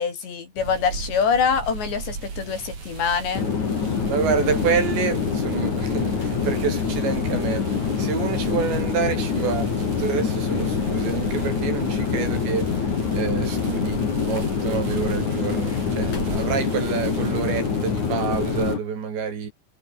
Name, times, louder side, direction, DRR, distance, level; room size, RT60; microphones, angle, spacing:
voice 1, 0.0-3.5, left 6 dB, 75° left, 7.1 m, -24 dB
sound 1, 0.6-18.7, right 5 dB, 40° right, 5.9 m, -36 dB
Chatter / Fixed-wing aircraft airplane, 3.3-18.8, left 6 dB, 45° left, 4.4 m, -25 dB
voice 2, 4.1-7.6 8.0-12.7 13.1-19.5, right 6 dB, 75° right, 6.8 m, -28 dB
omnidirectional pair, 5.1 m